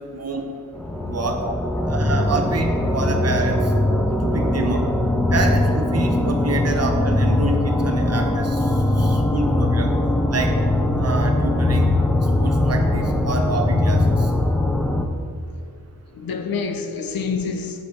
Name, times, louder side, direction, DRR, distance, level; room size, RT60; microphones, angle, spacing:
voice 1, 0.1-0.5 1.1-1.4 1.9-3.7 4.2-4.8 5.3-8.7 9.0-9.9 10.3-10.5 11.0-11.9 12.4-14.0, right 3 dB, 45° right, 3 dB, 0.7 m, -27 dB
sound 1, 0.7-15.1, left 1 dB, 5° left, 0.3 m, -20 dB
voice 2, 1.3-1.9 9.4-9.6 13.5-13.6 16.1-17.8, left 5 dB, 85° left, 6 dB, 0.5 m, -29 dB
5.7 x 4.1 x 5.1 m, 2.2 s
wide cardioid pair, 135°, 35 cm